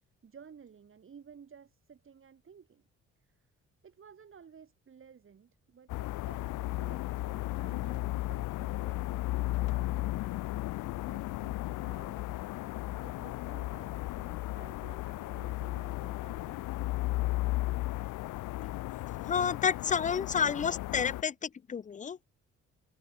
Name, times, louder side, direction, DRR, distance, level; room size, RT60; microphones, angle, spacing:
voice 1, 0.2-2.8 3.2-3.4 3.8-16.7, right 7 dB, 45° right, 3.2 m, -55 dB
sound 1, 5.9-21.2, left 18 dB, 85° left, 0.7 m, -35 dB
voice 2, 19.3-22.2, left 7 dB, 25° left, 0.4 m, -30 dB
cardioid pair, 90°, 30 cm